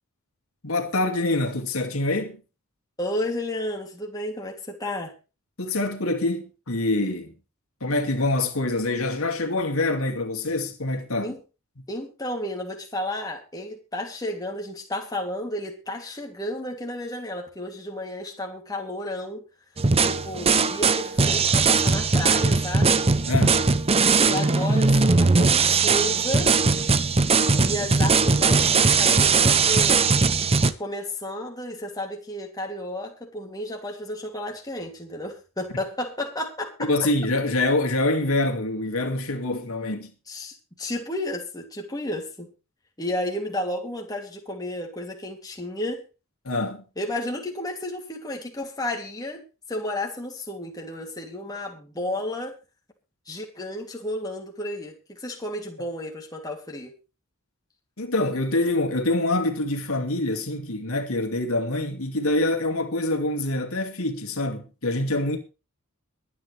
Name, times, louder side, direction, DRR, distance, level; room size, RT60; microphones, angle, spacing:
voice 1, 0.6-2.4 5.6-7.3 7.8-11.3 23.3-23.6 36.8-40.1 46.4-46.8 58.0-65.4, left 2 dB, 75° left, 2.5 m, -25 dB
voice 2, 3.0-5.1 11.2-11.4 11.9-19.4 20.0-23.0 24.2-26.5 26.9-27.1 27.6-30.0 30.8-36.9 40.3-42.5 43.0-46.0 47.0-49.4 49.7-52.5 53.3-56.9, left 1 dB, 15° left, 2.9 m, -32 dB
sound 1, 19.8-30.7, right 4 dB, 30° right, 0.8 m, -20 dB
22.5 x 9.6 x 3.4 m
head